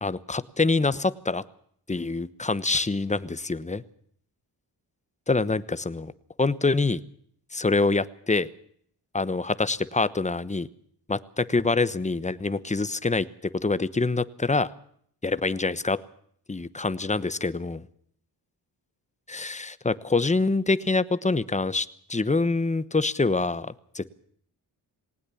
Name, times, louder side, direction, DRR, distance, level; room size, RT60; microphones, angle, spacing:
voice 1, 0.0-1.4 1.9-3.8 5.3-6.1 6.4-7.0 7.5-8.5 9.1-10.7 11.1-13.3 13.6-14.7 15.2-16.0 16.5-17.8 19.3-24.2, left 3 dB, 15° left, 16 dB, 1.0 m, -25 dB
20.0 x 19.0 x 7.1 m, 0.64 s
cardioid pair, 95°, 41 cm